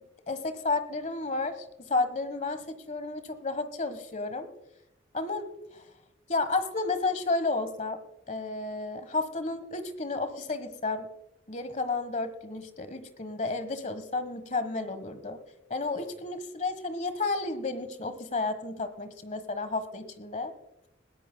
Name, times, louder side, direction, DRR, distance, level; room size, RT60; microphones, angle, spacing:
voice 1, 0.3-4.5 5.1-5.8 6.3-8.0 8.3-11.1 11.5-15.4 15.7-20.5, left 3 dB, 40° left, 11 dB, 1.3 m, -32 dB
21.0 x 16.5 x 2.2 m, 0.88 s
head